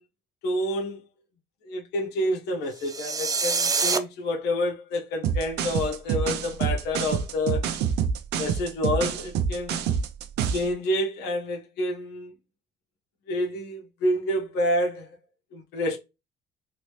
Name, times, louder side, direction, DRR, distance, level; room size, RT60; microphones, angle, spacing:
voice 1, 0.4-1.0 1.6-7.7 8.4-9.8 10.5-12.3 13.3-15.1 15.5-16.0, left 1 dB, 80° left, 1.0 m, -28 dB
sound 1, 2.8-4.0, right 5 dB, 20° right, 0.4 m, -25 dB
sound 2, 5.2-10.7, right 7 dB, 80° right, 0.5 m, -27 dB
3.1 x 2.7 x 2.9 m
cardioid pair, 110°, 17 cm